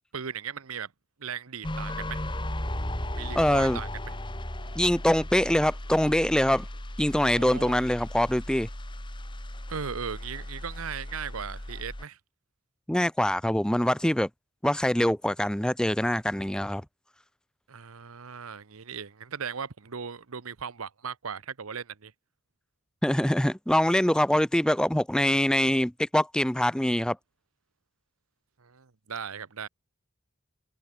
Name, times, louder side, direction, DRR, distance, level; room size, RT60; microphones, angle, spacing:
voice 1, 0.1-0.9 1.2-2.3 3.1-4.1 7.3-7.7 9.7-12.2 17.7-22.1 28.6-29.7, right 6 dB, 90° right, 0.9 m, -37 dB
sound 1, 1.6-12.0, left 1 dB, 20° left, 2.5 m, -36 dB
voice 2, 3.4-3.8 4.8-6.7 7.0-8.7 12.9-14.3 14.6-16.8 23.0-27.2, left 1 dB, 5° left, 0.5 m, -24 dB
head